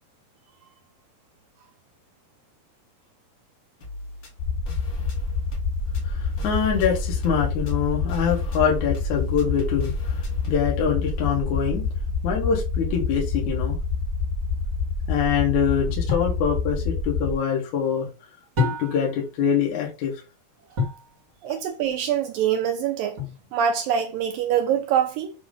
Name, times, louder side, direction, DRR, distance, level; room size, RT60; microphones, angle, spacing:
sound 1, 3.8-10.7, left 2 dB, 40° left, 1.9 m, -41 dB
sound 2, 4.4-17.3, left 5 dB, 75° left, 2.3 m, -27 dB
voice 1, 6.0-11.9 12.2-13.8 15.1-18.1 18.8-20.2, left 7 dB, 60° left, 2.4 m, -24 dB
sound 3, 16.1-16.4 18.6-19.2 20.8-21.1 23.2-23.7, left 4 dB, 35° right, 1.4 m, -27 dB
voice 2, 21.4-23.2 23.5-25.3, right 9 dB, 75° right, 2.2 m, -24 dB
7.5 x 3.0 x 5.0 m
omnidirectional pair, 4.5 m